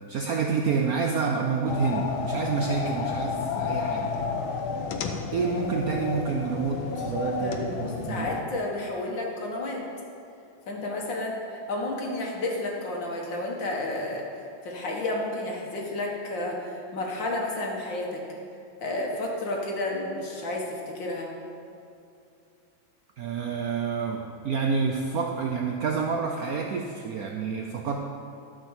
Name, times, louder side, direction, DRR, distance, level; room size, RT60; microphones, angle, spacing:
voice 1, 0.1-4.1 5.3-8.3 23.2-28.0, right 5 dB, 70° right, 2 dB, 0.9 m, -28 dB
sound 1, 1.7-8.4, left 5 dB, 85° left, 1.6 m, -31 dB
voice 2, 7.4-9.8 10.7-14.2 14.6-18.2 18.8-21.3, left 2 dB, 65° left, -1 dB, 2.2 m, -31 dB
12.5 x 5.5 x 7.3 m, 2.5 s
omnidirectional pair, 2.2 m